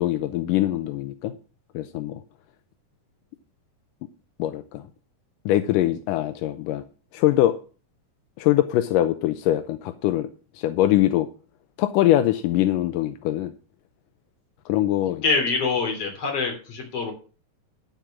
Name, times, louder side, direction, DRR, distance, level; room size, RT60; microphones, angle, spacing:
voice 1, 0.0-1.3 1.7-2.2 4.4-4.9 5.5-6.8 7.1-7.6 8.4-10.3 10.5-11.3 11.8-13.5 14.7-15.2, left 14 dB, 80° left, 10 dB, 2.0 m, -22 dB
voice 2, 15.2-17.1, left 4 dB, 40° left, 2 dB, 3.9 m, -25 dB
12.0 x 5.3 x 7.3 m, 0.38 s
omnidirectional pair, 4.5 m